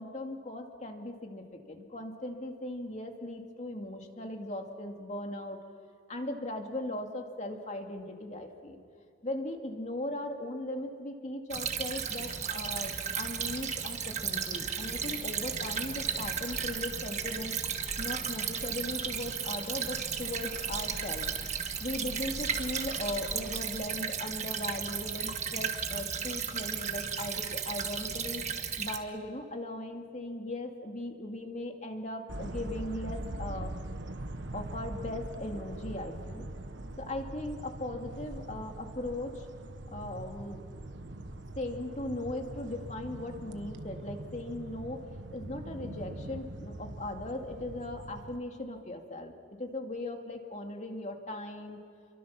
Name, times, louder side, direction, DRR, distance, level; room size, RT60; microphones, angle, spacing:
voice 1, 0.0-5.6 6.1-8.8 9.2-17.6 18.0-21.3 21.8-28.4 28.8-33.7 34.5-36.5 37.0-39.5 39.9-40.6 41.6-45.0 45.3-49.3 49.6-51.8, left 1 dB, 40° left, 3 dB, 2.5 m, -38 dB
Stream / Trickle dribble, 11.5-29.0, right 7 dB, 40° right, 1.6 m, -34 dB
sound 1, 11.9-23.7, equal, 10° right, 3.5 m, -48 dB
sound 2, 32.3-48.4, right 1 dB, 75° right, 1.3 m, -42 dB
30.0 x 23.5 x 6.0 m, 2.4 s
head